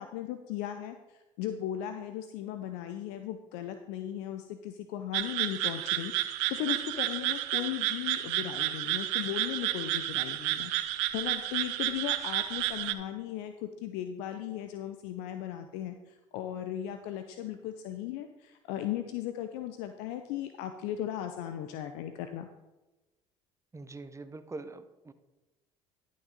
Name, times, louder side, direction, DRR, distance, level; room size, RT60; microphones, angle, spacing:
voice 1, 0.0-10.7 11.1-22.5, left 11 dB, 70° left, 8 dB, 0.6 m, -37 dB
sound 1, 5.1-12.9, right 15 dB, 75° right, 0.6 m, -31 dB
voice 2, 23.7-25.1, right 3 dB, 15° right, 11 dB, 0.8 m, -43 dB
11.5 x 6.1 x 4.1 m, 1.1 s
hypercardioid pair, 60°, 17 cm